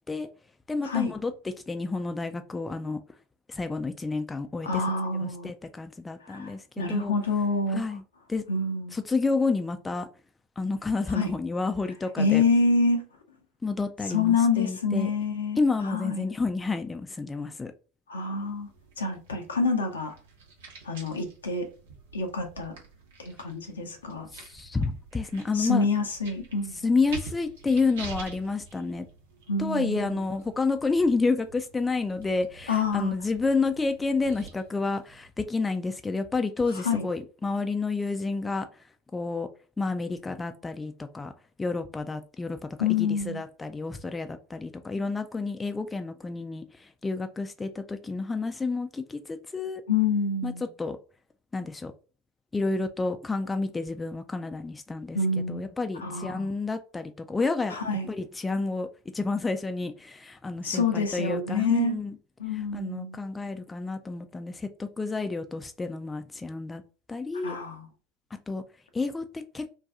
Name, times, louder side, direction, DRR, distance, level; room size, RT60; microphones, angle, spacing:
voice 1, 0.7-3.0 3.5-4.8 5.2-7.1 7.7-8.0 8.3-8.4 8.9-10.1 10.6-12.4 13.6-15.1 15.6-17.7 24.3-25.9 26.8-29.1 29.6-38.7 39.1-39.5 39.8-41.3 41.6-49.8 50.4-50.5 50.8-51.0 51.5-51.9 52.5-57.8 58.1-58.9 59.1-62.2 62.7-66.8 67.1-67.6 68.5-68.6 68.9-69.7, left 3 dB, 15° left, 0.4 m, -30 dB
voice 2, 4.6-5.5 6.2-7.8 8.5-8.9 11.1-11.3 12.2-13.1 14.1-15.6 15.8-16.2 18.1-18.7 19.0-20.1 20.8-21.7 22.1-22.7 23.2-24.3 25.5-26.9 29.5-30.3 32.7-33.1 36.7-37.1 42.8-43.4 49.9-50.7 55.1-55.7 56.0-56.5 57.7-58.1 60.6-62.0 62.4-63.2 67.4-67.9, left 4 dB, 85° left, 0.6 m, -27 dB
sound 1, 18.4-35.3, right 5 dB, 75° right, 0.9 m, -47 dB
2.6 x 2.3 x 3.5 m
hypercardioid pair, 75°, 0 cm